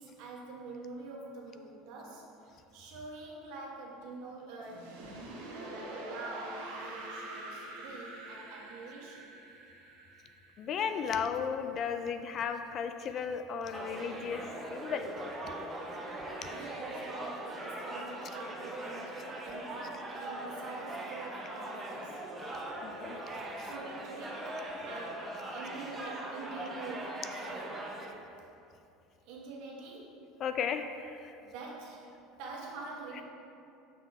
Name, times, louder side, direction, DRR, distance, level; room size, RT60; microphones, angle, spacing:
voice 1, 0.0-5.0 5.5-9.3 16.5-22.3 23.6-24.6 24.8-27.8 29.2-30.1 31.4-32.1 32.4-33.2, right 3 dB, 65° right, -2 dB, 1.3 m, -46 dB
Transition pitch-shift distortion positive, 4.6-11.5, right 2 dB, 85° right, 0.9 m, -45 dB
voice 2, 10.6-15.1 22.8-23.2 23.6-23.7 30.4-31.4, left 7 dB, 40° left, 8 dB, 0.3 m, -35 dB
sound 1, 13.7-28.1, right 1 dB, 15° right, 0.9 m, -41 dB
5.8 x 3.5 x 5.6 m, 2.7 s
supercardioid pair, 125°, 0 cm